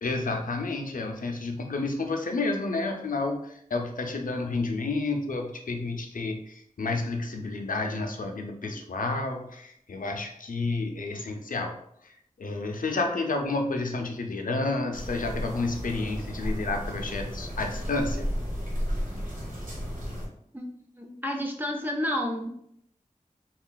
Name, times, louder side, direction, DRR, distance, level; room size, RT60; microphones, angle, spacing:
voice 1, 0.0-11.8 12.4-18.3, left 3 dB, 80° left, 4 dB, 0.5 m, -30 dB
sound 1, 14.9-20.3, equal, 75° right, 1.0 m, -33 dB
voice 2, 21.0-22.5, left 1 dB, 15° right, 1 dB, 0.5 m, -30 dB
3.7 x 2.3 x 2.2 m, 0.72 s
wide cardioid pair, 50°, 14 cm